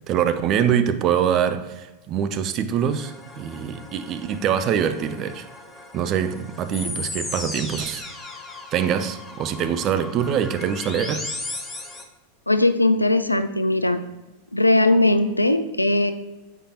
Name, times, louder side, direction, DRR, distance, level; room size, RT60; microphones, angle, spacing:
voice 1, 0.0-5.5 5.9-8.0 8.7-11.3, right 8 dB, 35° right, 0.4 m, -24 dB
sound 1, 2.9-12.0, left 2 dB, 15° left, 0.7 m, -36 dB
voice 2, 12.5-14.0 14.5-16.1, left 2 dB, 85° left, 0.4 m, -19 dB
6.7 x 5.0 x 2.8 m
figure-of-eight pair, 90°, 0 cm